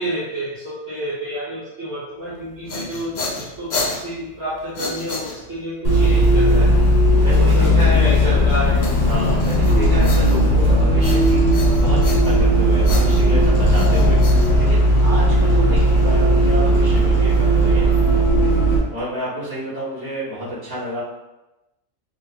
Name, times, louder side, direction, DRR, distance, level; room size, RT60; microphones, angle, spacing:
voice 1, 0.0-6.7 7.3-8.9, equal, 55° right, -11 dB, 1.1 m, -29 dB
sound 1, 2.4-5.8 8.8-10.7 11.0-12.5 12.8-15.1, left 3 dB, 85° left, 0.4 m, -31 dB
Bus, 5.8-18.8, equal, 65° left, 1.5 m, -16 dB
voice 2, 7.2-8.5 9.0-18.3 18.9-21.0, right 1 dB, 15° right, -11 dB, 1.4 m, -29 dB
3.8 x 2.9 x 2.3 m, 0.98 s
omnidirectional pair, 1.4 m